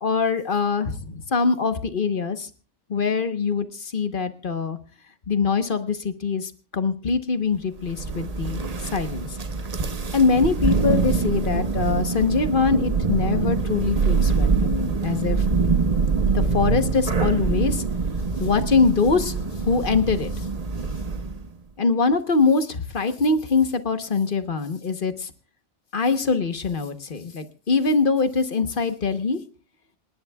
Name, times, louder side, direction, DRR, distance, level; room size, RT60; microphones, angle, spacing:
voice 1, 0.0-2.5 2.9-4.8 5.3-9.3 10.1-15.5 16.3-17.8 18.4-19.4 19.7-20.5 21.8-25.3 25.9-29.4, left 4 dB, 45° left, 10 dB, 1.2 m, -23 dB
Thunder, 7.8-21.5, right 4 dB, 35° right, 0.9 m, -24 dB
27.0 x 11.0 x 2.3 m, 0.37 s
omnidirectional pair, 1.3 m